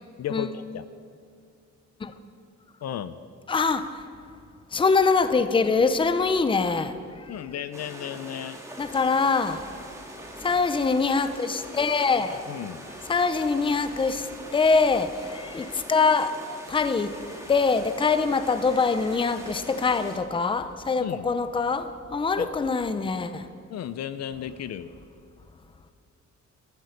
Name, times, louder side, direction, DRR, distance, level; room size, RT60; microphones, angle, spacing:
voice 1, 0.2-0.9 2.8-3.2 7.3-8.6 12.5-12.8 21.0-21.3 22.4-22.5 23.7-24.9, left 10 dB, 60° left, 13 dB, 0.6 m, -34 dB
voice 2, 3.5-3.9 4.7-6.9 8.8-9.6 10.4-12.4 13.1-14.3 14.5-17.1 17.5-23.5, left 4 dB, 15° left, 11 dB, 0.6 m, -24 dB
sound 1, 7.7-20.2, right 1 dB, 10° right, 1.8 m, -43 dB
14.5 x 13.0 x 5.2 m, 2.5 s
cardioid pair, 130°, 30 cm